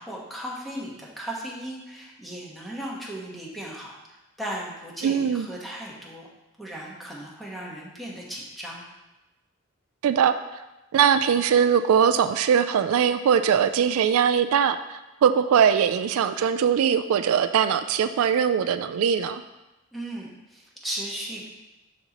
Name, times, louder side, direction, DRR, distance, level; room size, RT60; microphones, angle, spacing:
voice 1, 0.0-6.3 6.6-8.8 19.9-21.5, right 1 dB, ahead, -4 dB, 1.2 m, -36 dB
voice 2, 5.0-5.5 10.0-10.4 10.9-19.4, right 7 dB, 75° right, 11 dB, 0.3 m, -21 dB
12.0 x 4.2 x 2.9 m, 1.0 s
head